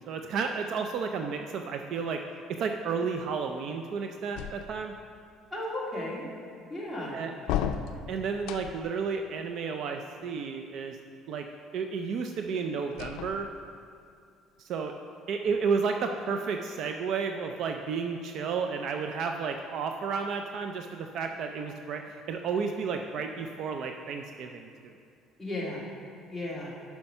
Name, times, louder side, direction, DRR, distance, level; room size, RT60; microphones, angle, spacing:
voice 1, 0.0-2.2 2.5-4.9 7.1-7.3 8.1-11.0 11.3-11.5 11.7-13.5 14.6-14.9 15.3-25.0, right 5 dB, 50° right, 5 dB, 0.4 m, -32 dB
sound 1, 4.3-5.1 7.4-9.0 12.9-13.9, left 9 dB, 80° left, 0.4 m, -34 dB
voice 2, 5.5-6.2 6.7-7.2 25.4-25.9 26.3-26.7, left 1 dB, ahead, -7 dB, 1.9 m, -34 dB
8.6 x 5.8 x 5.4 m, 2.4 s
cardioid pair, 160°, 0 cm